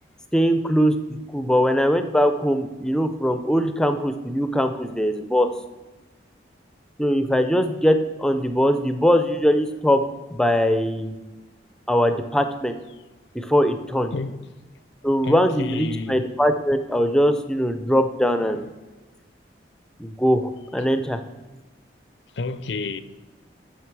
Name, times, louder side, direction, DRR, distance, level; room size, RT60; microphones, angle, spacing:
voice 1, 0.3-5.5 7.0-10.0 10.3-11.2 11.9-12.8 13.3-14.1 15.0-18.6 20.0-21.2, equal, 5° left, 0.4 m, -21 dB
voice 2, 14.1-14.5 15.2-16.3 22.3-23.0, left 3 dB, 75° left, 0.5 m, -30 dB
9.3 x 6.2 x 4.6 m
head